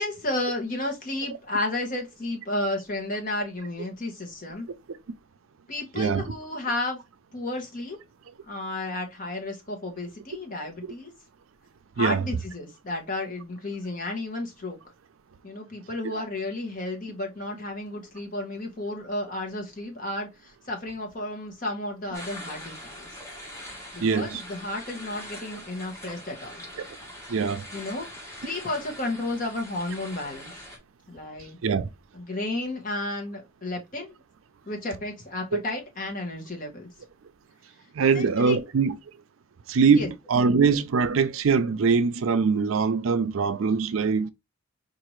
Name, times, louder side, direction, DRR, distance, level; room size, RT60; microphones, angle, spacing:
voice 1, 0.0-4.7 5.7-7.0 7.3-8.0 8.5-11.1 12.0-14.8 15.4-23.1 23.9-26.6 27.7-28.1 28.4-30.5 31.1-31.6 32.1-34.1 34.7-36.9 38.0-38.6 39.9-40.1, left 2 dB, 40° left, 1.2 m, -32 dB
sound 1, 22.1-30.8, left 1 dB, 15° left, 1.2 m, -43 dB
voice 2, 24.0-24.4 27.3-27.7 31.6-31.9 35.5-35.6 37.9-39.0 39.7-44.3, right 5 dB, 90° right, 0.5 m, -22 dB
4.7 x 2.6 x 3.0 m
head